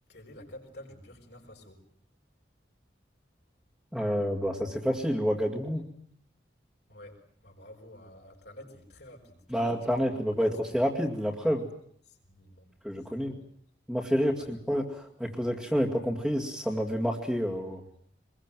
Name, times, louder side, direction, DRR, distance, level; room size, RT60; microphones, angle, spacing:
voice 1, 0.1-1.8 6.9-7.2 7.4-9.7 10.0-10.1 10.4-10.5 12.3-12.7 13.1-13.4 14.3-14.5, left 1 dB, 65° left, 2 dB, 6.2 m, -49 dB
voice 2, 3.9-5.9 9.5-11.7 12.8-13.4 13.9-17.8, equal, ahead, -5 dB, 2.2 m, -29 dB
24.5 x 22.0 x 9.2 m, 0.63 s
head